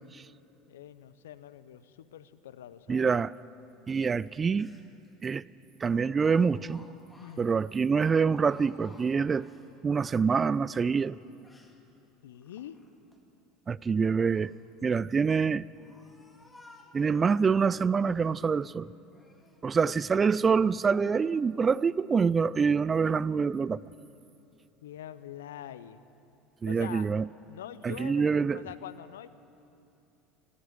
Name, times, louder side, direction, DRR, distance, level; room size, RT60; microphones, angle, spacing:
voice 1, 0.7-3.1 7.2-7.6 12.2-12.8 24.8-26.0 26.7-27.1 27.5-29.3, left 11 dB, 80° left, 0.5 m, -44 dB
voice 2, 2.9-3.3 3.9-4.7 5.2-5.4 5.8-6.8 7.4-9.5 9.8-11.2 13.7-14.5 14.8-15.6 16.9-18.9 19.6-23.8 26.6-27.2 27.8-28.6, right 5 dB, 30° right, 0.3 m, -26 dB
Speech, 4.3-4.4 4.5-5.1 5.8-9.7 10.1-11.8 12.3-13.2 14.1-14.7 15.4-17.4 17.9-18.7 19.1-19.6 20.2-20.3 20.8-21.2 21.6-21.9, left 2 dB, 10° left, 1.8 m, -57 dB
15.0 x 9.7 x 9.7 m
hypercardioid pair, 75°, 0 cm